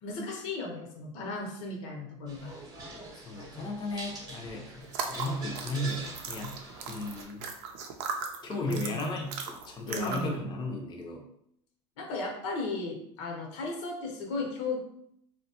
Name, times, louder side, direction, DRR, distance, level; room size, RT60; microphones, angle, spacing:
voice 1, 0.0-2.5 8.6-9.2 9.8-10.4 12.0-14.8, left 3 dB, 80° left, 1 dB, 0.8 m, -36 dB
sound 1, 2.3-7.2, right 2 dB, 25° right, 0.8 m, -44 dB
voice 2, 3.2-6.6 6.9-7.4 8.4-11.2, left 1 dB, 30° left, 1 dB, 0.5 m, -35 dB
sound 2, 4.8-10.4, right 5 dB, 75° right, 0.5 m, -38 dB
2.8 x 2.2 x 2.8 m, 0.73 s
supercardioid pair, 100°, 15 cm